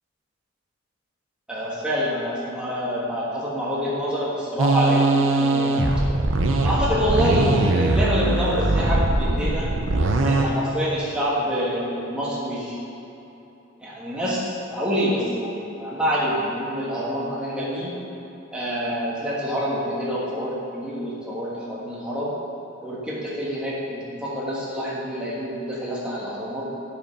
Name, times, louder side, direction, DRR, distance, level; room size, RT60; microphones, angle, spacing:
voice 1, 1.5-5.7 6.6-9.7 10.2-12.8 13.8-17.9 18.5-22.4 22.8-26.6, equal, 5° right, -8 dB, 1.4 m, -26 dB
sound 1, 4.6-10.5, right 2 dB, 85° right, 0.7 m, -21 dB
9.4 x 5.1 x 5.4 m, 3.0 s
head